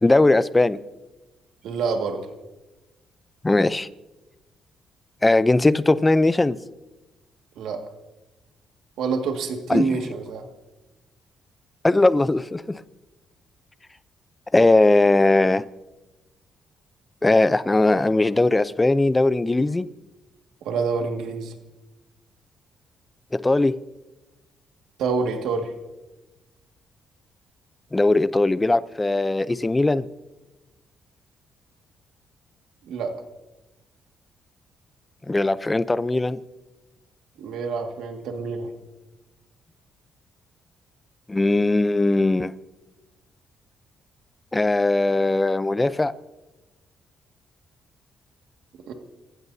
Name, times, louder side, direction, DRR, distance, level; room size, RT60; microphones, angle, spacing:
voice 1, 0.0-0.8 3.4-3.9 5.2-6.6 9.7-10.0 11.8-12.8 14.5-15.6 17.2-19.9 23.3-23.8 27.9-30.1 35.3-36.4 41.3-42.5 44.5-46.1, left 2 dB, 15° left, 0.6 m, -19 dB
voice 2, 1.6-2.3 7.6-7.8 9.0-10.4 20.6-21.5 25.0-25.7 32.9-33.2 37.4-38.7 48.9-49.0, right 4 dB, 80° right, 2.0 m, -27 dB
29.0 x 15.5 x 2.8 m
cardioid pair, 90°, 0 cm